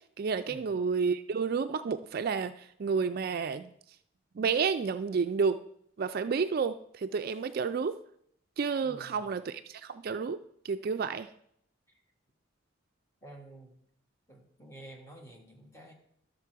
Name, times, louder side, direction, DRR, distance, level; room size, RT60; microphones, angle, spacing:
voice 1, 0.2-3.7 4.4-5.6 6.0-8.0 8.6-10.4 10.6-11.3, right 5 dB, 50° right, 10 dB, 0.3 m, -30 dB
voice 2, 8.8-9.2 11.9-12.0 13.2-13.8 14.3-15.9, right 1 dB, 15° left, 0 dB, 1.7 m, -50 dB
12.0 x 6.6 x 4.6 m, 0.70 s
head